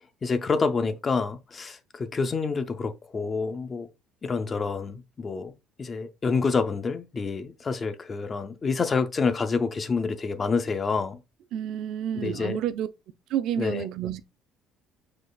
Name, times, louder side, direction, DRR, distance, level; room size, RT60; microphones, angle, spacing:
voice 1, 0.2-3.9 4.2-5.5 5.8-11.2 12.2-12.6 13.6-13.8, left 4 dB, 20° left, 0.5 m, -28 dB
voice 2, 11.5-12.9 13.3-14.2, right 10 dB, 60° right, 0.4 m, -29 dB
5.2 x 4.0 x 2.3 m
cardioid pair, 165°, 0 cm